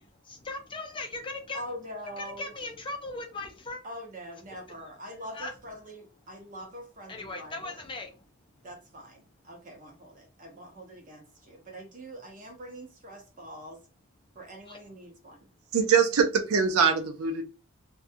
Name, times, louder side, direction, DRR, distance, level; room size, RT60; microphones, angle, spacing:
voice 1, 0.0-1.6 2.2-3.8 4.5-4.8 5.2-5.5 7.1-8.2 14.7-14.9, left 2 dB, 25° left, 0.4 m, -39 dB
voice 2, 1.5-2.5 3.8-7.8 8.6-13.8 14.4-15.4, equal, 40° right, 0.8 m, -43 dB
voice 3, 15.7-17.4, right 6 dB, 80° right, 0.5 m, -23 dB
2.5 x 2.2 x 2.6 m
head